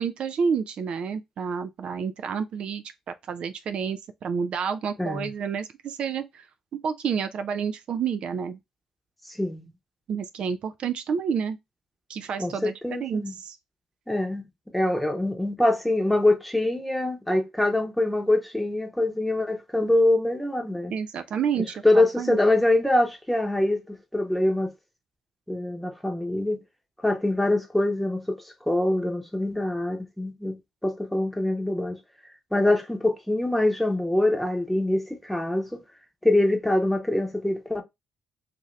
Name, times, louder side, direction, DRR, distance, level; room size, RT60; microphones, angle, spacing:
voice 1, 0.0-2.8 3.3-6.4 6.8-8.6 10.1-11.6 12.1-12.7 13.0-13.6 20.9-22.4, right 6 dB, 60° right, 0.3 m, -29 dB
voice 2, 5.0-5.3 9.3-9.7 12.4-13.4 14.1-14.4 14.7-20.9 21.8-24.7 25.5-26.6 27.0-28.4 28.7-30.6 30.8-32.0 32.5-35.8 36.2-37.8, left 1 dB, 5° left, 0.9 m, -24 dB
2.7 x 2.6 x 3.0 m
supercardioid pair, 55°, 2 cm